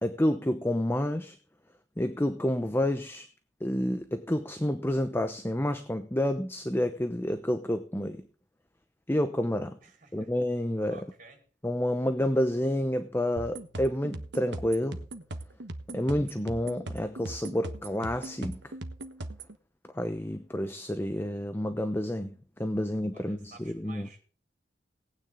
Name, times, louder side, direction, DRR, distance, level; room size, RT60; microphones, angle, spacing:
voice 1, 0.0-1.4 2.0-3.3 3.6-8.2 9.1-9.8 10.1-11.0 11.6-15.0 15.9-18.6 19.9-24.1, left 1 dB, 15° left, 9 dB, 0.8 m, -29 dB
voice 2, 9.8-10.3 10.9-11.4 23.1-24.2, right 4 dB, 45° right, 2 dB, 4.9 m, -53 dB
sound 1, 13.4-19.6, right 1 dB, 80° right, 1.3 m, -40 dB
18.0 x 9.5 x 3.8 m, 0.39 s
head